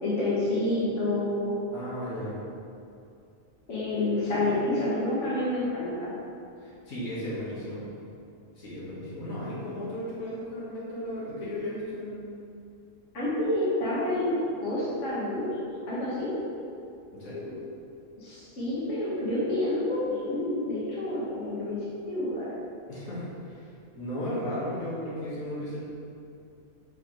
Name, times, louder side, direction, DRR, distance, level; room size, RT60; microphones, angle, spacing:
voice 1, 0.0-1.6 3.7-6.1 13.1-14.3 14.6-15.5 15.9-16.3 18.2-21.8 22.1-22.5, left 1 dB, 65° left, -8 dB, 1.8 m, -28 dB
voice 2, 1.7-2.4 4.3-4.6 6.6-7.8 8.6-12.2 17.1-17.5 22.9-23.7 24.0-25.8, equal, 90° left, -9 dB, 2.0 m, -35 dB
6.0 x 5.8 x 3.1 m, 2.5 s
omnidirectional pair, 1.4 m